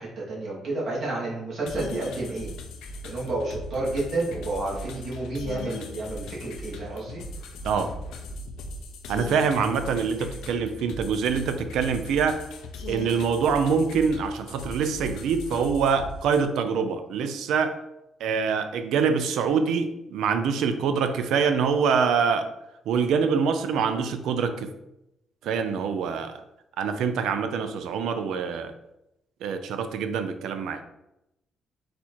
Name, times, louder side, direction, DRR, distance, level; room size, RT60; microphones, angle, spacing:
voice 1, 0.0-2.5 3.0-7.2, right 2 dB, 55° right, -6 dB, 1.2 m, -30 dB
sound 1, 1.7-16.4, left 2 dB, 90° left, 0.5 m, -39 dB
voice 2, 9.1-12.5 12.9-17.8 18.2-22.5 22.9-24.7 25.4-26.4 26.8-28.7 29.4-30.8, right 6 dB, 85° right, 9 dB, 0.4 m, -25 dB
4.2 x 2.4 x 4.3 m, 0.88 s
cardioid pair, 130°, 0 cm